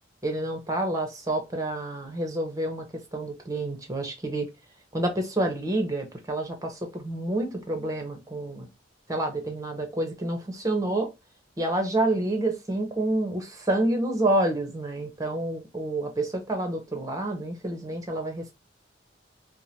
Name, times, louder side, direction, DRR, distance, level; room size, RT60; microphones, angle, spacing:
voice 1, 0.2-4.5 4.9-8.7 9.1-11.1 11.6-18.5, right 1 dB, 20° right, 1.0 m, -28 dB
4.7 x 2.2 x 2.8 m
head